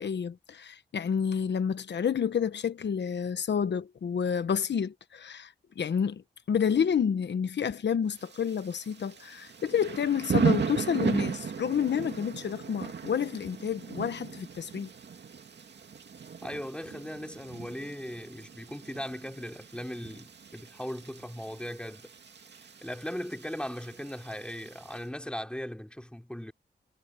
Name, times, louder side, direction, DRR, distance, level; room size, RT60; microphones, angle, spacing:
voice 1, 0.0-14.9, left 7 dB, 75° left, 1.0 m, -29 dB
Thunder / Rain, 8.1-25.0, right 6 dB, 70° right, 2.4 m, -36 dB
voice 2, 16.4-22.1 22.5-26.5, equal, 5° left, 3.3 m, -38 dB
wide cardioid pair, 100°, 18 cm